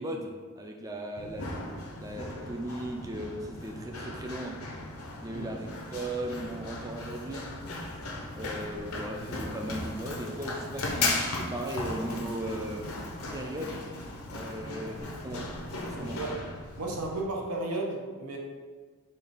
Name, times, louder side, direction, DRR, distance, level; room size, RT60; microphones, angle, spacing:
voice 1, 0.0-1.5 2.0-4.6 5.2-7.5 8.4-12.9 13.3-13.9 14.3-15.5 15.8-16.2, right 1 dB, 15° right, 2 dB, 0.3 m, -37 dB
Run, 1.2-17.2, left 2 dB, 75° left, 0.7 m, -37 dB
voice 2, 16.8-18.4, right 2 dB, 90° right, 0 dB, 0.8 m, -34 dB
4.3 x 2.4 x 4.8 m, 1.5 s
head